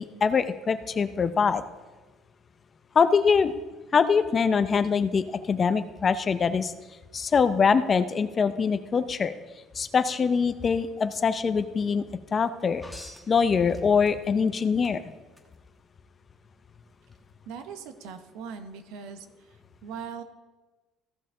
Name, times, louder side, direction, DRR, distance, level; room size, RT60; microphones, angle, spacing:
voice 1, 0.0-1.6 2.9-3.5 3.9-6.7 7.1-9.3 9.7-12.0 12.3-12.8 13.3-15.1, left 5 dB, 30° left, 12 dB, 0.5 m, -23 dB
sound 1, 12.8-14.4 14.8-15.5 17.0-17.2, left 1 dB, 5° left, 1.2 m, -46 dB
voice 2, 17.5-19.3 19.8-20.2, right 6 dB, 90° right, 8 dB, 1.0 m, -39 dB
15.5 x 6.6 x 3.7 m, 1.2 s
cardioid pair, 130°, 0 cm